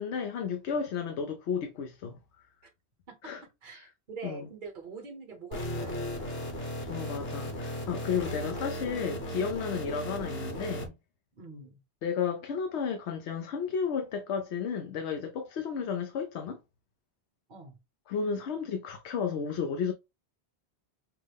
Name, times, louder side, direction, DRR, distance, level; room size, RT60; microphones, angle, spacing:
voice 1, 0.0-2.2 3.2-3.4 3.7-3.9 4.2-4.5 6.9-10.9 12.0-16.6 18.1-19.9, left 6 dB, 90° left, 0.9 m, -33 dB
voice 2, 3.6-6.5 11.4-11.8 17.5-17.8, right 4 dB, 50° right, 1.2 m, -45 dB
sound 1, 5.5-10.9, equal, 65° left, 1.3 m, -36 dB
5.6 x 2.1 x 3.4 m
omnidirectional pair, 1.1 m